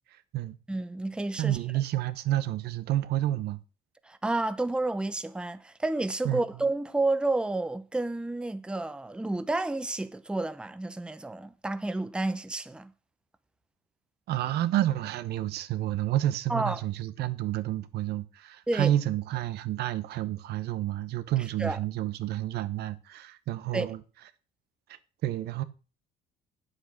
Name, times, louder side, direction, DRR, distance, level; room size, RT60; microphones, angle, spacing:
voice 1, 0.1-0.6 1.4-3.6 6.2-6.4 14.3-24.0 24.9-25.6, right 13 dB, 75° right, 0.9 m, -30 dB
voice 2, 0.7-1.6 4.0-12.9 16.5-16.8 18.7-18.9 21.6-21.8 23.7-23.9, right 2 dB, 5° right, 0.7 m, -30 dB
8.5 x 7.9 x 5.9 m
cardioid pair, 110°, 17 cm